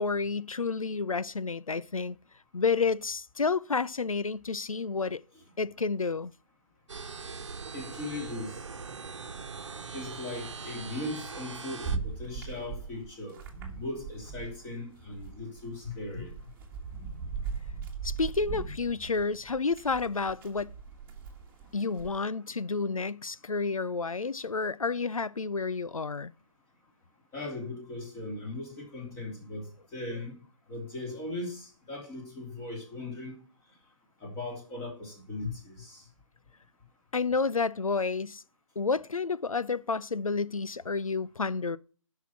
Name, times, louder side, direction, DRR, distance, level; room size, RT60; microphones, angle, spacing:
voice 1, 0.0-2.2 2.5-5.2 5.6-6.3 18.0-20.7 21.7-26.3 37.1-38.4 38.8-41.8, left 4 dB, 85° left, 0.7 m, -30 dB
sound 1, 6.9-12.0, right 5 dB, 60° right, 1.2 m, -41 dB
voice 2, 7.7-8.6 9.9-13.4 13.8-16.3 27.3-30.4 30.7-33.3 34.2-36.0, left 2 dB, 15° left, 3.0 m, -38 dB
sound 2, 11.8-14.7 14.9-22.2, right 5 dB, 10° right, 1.8 m, -39 dB
12.5 x 5.8 x 5.9 m
figure-of-eight pair, 150°, 17 cm